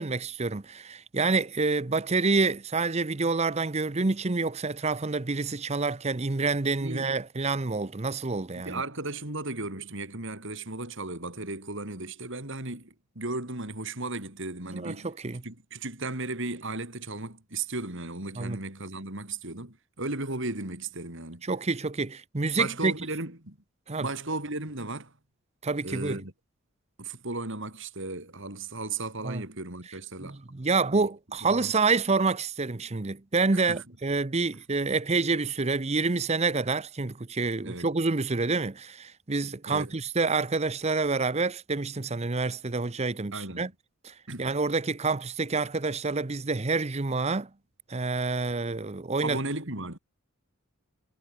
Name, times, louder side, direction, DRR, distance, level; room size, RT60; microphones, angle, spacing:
voice 1, 0.0-8.8 14.7-15.4 18.4-18.6 21.4-22.9 23.9-24.1 25.6-26.2 29.2-29.4 30.2-43.7 44.0-47.5 47.9-49.4, right 3 dB, 30° right, 0.8 m, -28 dB
voice 2, 8.5-15.1 15.4-21.4 22.6-23.6 24.0-25.1 25.8-26.3 27.0-30.4 30.9-31.1 31.5-31.7 33.5-33.8 37.6-37.9 39.7-40.0 43.3-43.7 44.3-44.5 49.2-50.0, right 2 dB, 60° right, 4.9 m, -35 dB
head